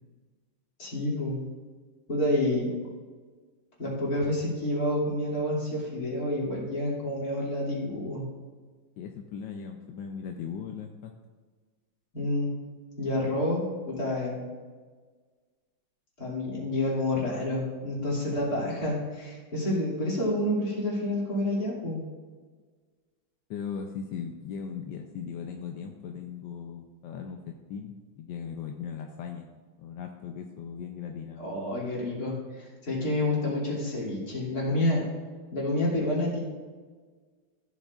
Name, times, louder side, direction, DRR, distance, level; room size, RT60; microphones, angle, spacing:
voice 1, 0.8-1.4 2.1-2.7 3.8-8.2 12.1-12.5 13.0-14.4 16.2-22.0 31.4-35.0 35.5-36.4, left 1 dB, 45° left, -5 dB, 3.1 m, -29 dB
voice 2, 9.0-11.1 23.5-29.5 29.8-31.5, left 7 dB, 70° left, 3 dB, 1.2 m, -38 dB
14.0 x 8.0 x 2.4 m, 1.5 s
omnidirectional pair, 2.3 m